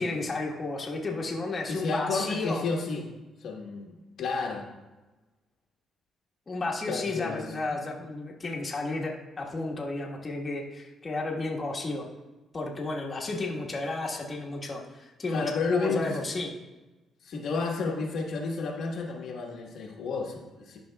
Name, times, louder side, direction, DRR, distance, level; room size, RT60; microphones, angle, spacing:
voice 1, 0.0-2.7 6.5-12.0 12.5-16.5, left 2 dB, 30° left, -2 dB, 1.3 m, -32 dB
voice 2, 1.7-3.1 3.4-4.7 6.9-7.5 15.3-16.1 17.2-20.8, left 4 dB, 70° left, -1 dB, 1.2 m, -31 dB
11.5 x 5.3 x 2.2 m, 1.1 s
cardioid pair, 90°, 0 cm